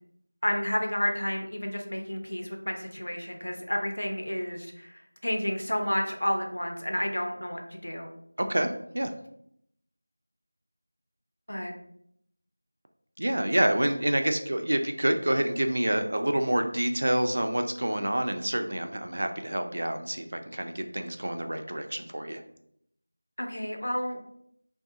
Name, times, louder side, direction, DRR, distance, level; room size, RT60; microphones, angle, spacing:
voice 1, 0.4-8.1 11.5-11.7 23.4-24.2, equal, 75° left, 3 dB, 0.5 m, -31 dB
voice 2, 8.4-9.1 13.2-22.4, right 1 dB, 55° right, 6 dB, 0.3 m, -27 dB
2.3 x 2.3 x 2.6 m, 0.73 s
figure-of-eight pair, 170°, 0 cm